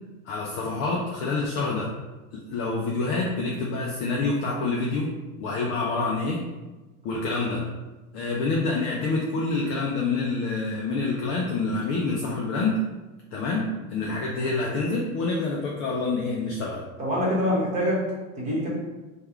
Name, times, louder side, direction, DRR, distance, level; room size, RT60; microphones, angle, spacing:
voice 1, 0.3-1.9 2.3-5.1 5.4-6.4 7.0-7.7 8.1-12.8 13.3-16.8, left 3 dB, 30° left, -2 dB, 0.4 m, -27 dB
voice 2, 17.0-18.7, equal, 15° right, -5 dB, 1.2 m, -25 dB
3.4 x 2.4 x 4.4 m, 1.1 s
supercardioid pair, 140°, 43 cm